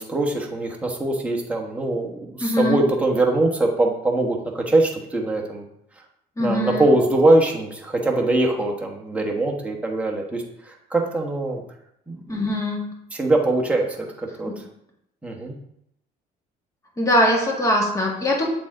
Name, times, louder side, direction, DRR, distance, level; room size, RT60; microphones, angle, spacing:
voice 1, 0.0-5.6 6.4-11.6 12.1-12.4 13.1-14.6 15.2-15.6, right 2 dB, 10° right, -1 dB, 1.2 m, -22 dB
voice 2, 2.4-2.8 6.4-6.9 12.3-12.8 14.5-14.6 17.0-18.5, left 1 dB, 20° left, -2 dB, 1.9 m, -21 dB
7.5 x 4.1 x 3.8 m, 0.76 s
cardioid pair, 110°, 17 cm